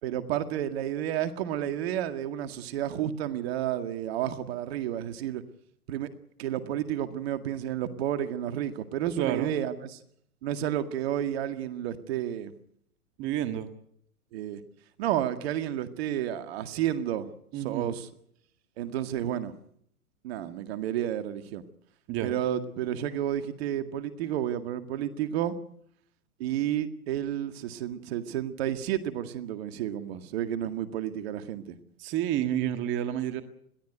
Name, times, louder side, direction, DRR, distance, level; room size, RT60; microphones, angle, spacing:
voice 1, 0.0-5.4 5.9-6.1 6.4-10.0 10.4-12.5 14.3-14.6 15.0-17.3 17.6-18.1 18.8-19.5 20.2-21.6 22.2-25.6 26.4-31.8, right 11 dB, 45° right, 9 dB, 2.0 m, -31 dB
voice 2, 9.2-9.5 13.2-13.7 17.5-17.9 22.1-22.3 32.0-33.4, right 11 dB, 25° right, 8 dB, 1.7 m, -29 dB
21.5 x 16.0 x 9.3 m, 0.68 s
hypercardioid pair, 120°, 43 cm